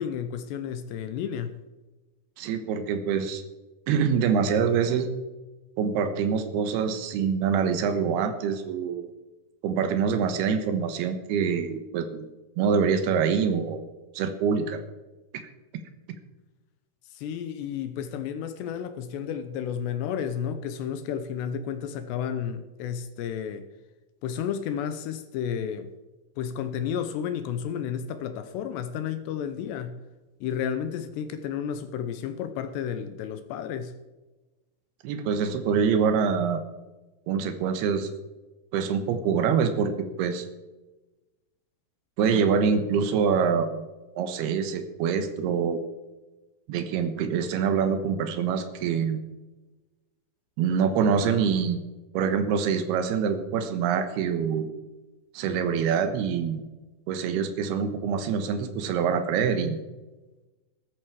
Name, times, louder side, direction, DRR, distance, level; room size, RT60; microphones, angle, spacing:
voice 1, 0.0-1.6 17.1-23.6 24.2-25.9 26.4-30.0 30.4-33.9, left 8 dB, 75° left, 2.6 m, -32 dB
voice 2, 2.4-3.4 3.9-5.1 5.8-9.1 9.6-12.3 12.6-13.8 14.1-14.8 35.0-36.6 37.3-38.1 38.7-39.9 40.2-40.5 42.2-43.9 44.2-45.8 46.7-49.2 50.6-51.8 52.1-54.7 55.3-56.6 57.1-59.8, right 6 dB, 70° right, 2.6 m, -25 dB
14.0 x 13.5 x 4.8 m
omnidirectional pair, 5.8 m